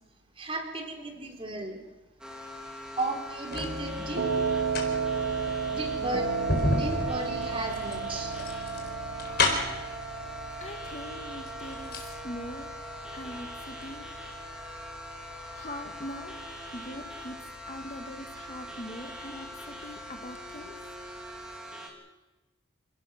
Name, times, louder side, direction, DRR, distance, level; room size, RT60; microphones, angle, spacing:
voice 1, 0.4-1.8 3.0-4.3 5.7-6.3 6.6-8.4, right 2 dB, 25° right, 3 dB, 3.6 m, -35 dB
sound 1, 2.2-21.9, left 1 dB, 5° right, 3.2 m, -42 dB
sound 2, 2.8-3.8 4.5-9.9 10.8-10.9 11.3-12.1 12.4-12.5, left 2 dB, 50° left, 4.1 m, -30 dB
sound 3, 3.5-21.5, right 4 dB, 65° right, 3.4 m, -35 dB
voice 2, 10.6-12.7 13.1-14.1 15.5-16.4 16.7-20.7, left 1 dB, 35° left, 6 dB, 1.5 m, -42 dB
28.5 x 17.0 x 6.3 m, 1.1 s
head